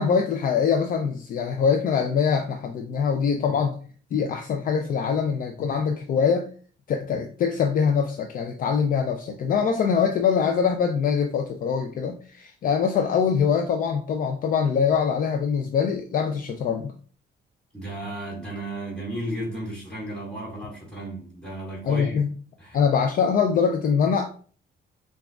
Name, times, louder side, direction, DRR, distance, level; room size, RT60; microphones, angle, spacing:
voice 1, 0.0-3.7 4.1-6.5 6.9-16.9 21.8-22.3 22.7-24.3, left 6 dB, 50° left, 0.4 m, -23 dB
voice 2, 17.7-22.2 22.6-22.8, right 1 dB, 5° left, 2.0 m, -34 dB
6.0 x 2.4 x 2.3 m
cardioid pair, 160°, 18 cm